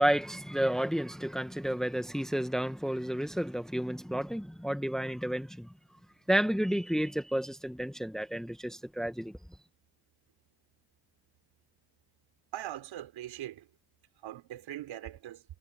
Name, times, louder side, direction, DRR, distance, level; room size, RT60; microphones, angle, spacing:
voice 1, 0.0-5.7 6.3-9.3, right 1 dB, ahead, 1.3 m, -31 dB
voice 2, 12.5-13.7 14.2-15.4, right 12 dB, 85° right, 3.9 m, -41 dB
cardioid pair, 120°, 45 cm